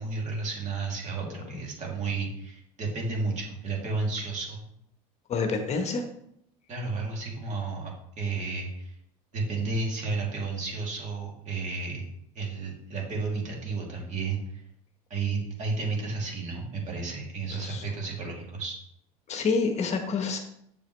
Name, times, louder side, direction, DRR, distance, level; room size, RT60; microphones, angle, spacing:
voice 1, 0.0-4.6 6.7-8.9 9.3-12.0 12.3-14.6 15.1-18.8, right 3 dB, 40° right, -1 dB, 2.8 m, -32 dB
voice 2, 5.3-6.0 17.5-17.8 19.3-20.4, left 4 dB, 35° left, 5 dB, 1.0 m, -28 dB
7.4 x 6.9 x 3.2 m, 0.74 s
supercardioid pair, 105°, 19 cm